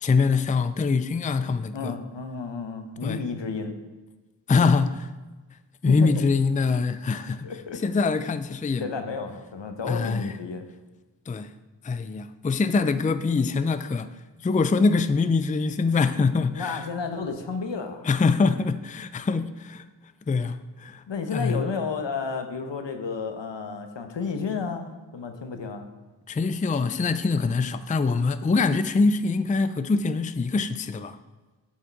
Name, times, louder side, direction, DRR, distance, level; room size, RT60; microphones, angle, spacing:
voice 1, 0.0-2.0 3.0-3.2 4.5-5.1 5.8-7.5 7.8-8.9 9.9-10.3 11.3-11.5 11.8-14.1 14.4-16.8 18.0-19.8 20.3-21.0 21.3-21.7 26.3-31.2, left 4 dB, 20° left, 12 dB, 0.4 m, -24 dB
voice 2, 1.7-3.7 5.9-6.2 7.4-7.8 8.8-10.6 16.5-18.1 21.1-25.9, left 5 dB, 75° left, 6 dB, 1.0 m, -32 dB
7.4 x 6.3 x 4.6 m, 1.2 s
cardioid pair, 50°, 43 cm